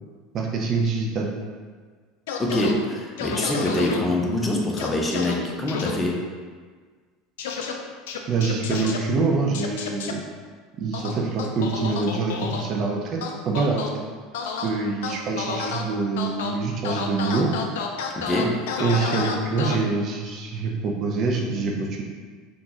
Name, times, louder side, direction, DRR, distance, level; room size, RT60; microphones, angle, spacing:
voice 1, 0.3-1.3 8.3-10.2 10.8-13.2 13.5-13.8 14.6-17.5 18.8-22.0, right 4 dB, 40° right, 0 dB, 0.4 m, -25 dB
sound 1, 2.3-2.7 3.2-4.0 4.8-5.3 5.7-5.9 7.4-7.7 8.1-9.0 9.5-10.1 10.9-12.6 13.2-13.9 14.3-14.7 15.0-15.8 16.2-16.5 16.8-19.7, left 6 dB, 65° left, 0.3 m, -30 dB
voice 2, 2.4-6.2 18.2-18.6, left 1 dB, 15° left, -1 dB, 0.6 m, -24 dB
3.7 x 2.4 x 2.8 m, 1.5 s
figure-of-eight pair, 75°, 0 cm